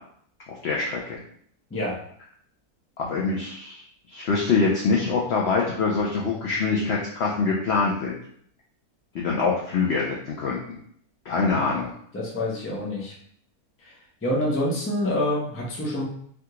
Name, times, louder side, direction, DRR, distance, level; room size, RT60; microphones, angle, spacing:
voice 1, 0.5-1.2 3.0-3.8 4.1-8.2 9.1-10.6 11.3-11.9, left 4 dB, 70° left, -3 dB, 0.6 m, -24 dB
voice 2, 12.1-13.1 13.8-14.0 14.2-16.0, left 1 dB, 20° left, -4 dB, 0.4 m, -26 dB
3.4 x 2.4 x 2.8 m, 0.64 s
omnidirectional pair, 1.6 m